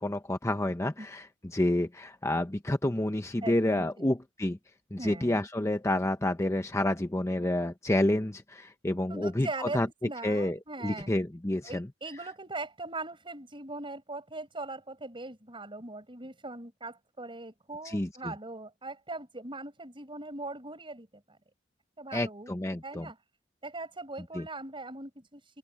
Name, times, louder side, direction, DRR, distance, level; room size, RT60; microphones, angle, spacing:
voice 1, 0.0-4.6 4.9-9.9 10.2-10.6 10.8-11.9 17.8-18.3 22.1-23.1 24.3-24.5, left 1 dB, 15° left, 0.8 m, -29 dB
voice 2, 3.4-4.1 5.0-5.4 9.1-11.1 11.6-21.4 22.0-23.2 23.6-25.6, right 2 dB, 25° right, 6.5 m, -40 dB
open air
head